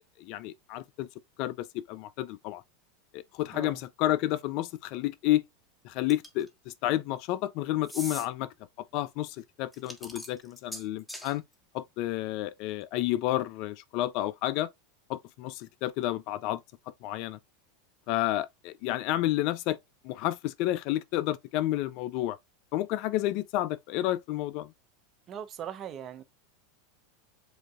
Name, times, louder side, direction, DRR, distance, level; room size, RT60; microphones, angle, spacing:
voice 1, 0.2-1.1 1.4-2.6 3.1-5.4 5.8-8.5 8.9-11.4 11.7-14.7 15.1-16.6 17.0-17.4 18.1-19.8 20.0-22.4 22.7-24.7, left 15 dB, 55° left, 0.4 m, -30 dB
sound 1, 6.1-6.5 7.8-8.3 9.7-11.3, equal, 5° left, 1.4 m, -41 dB
voice 2, 25.3-26.2, right 9 dB, 40° right, 0.8 m, -40 dB
7.8 x 2.6 x 2.4 m
hypercardioid pair, 90°, 0 cm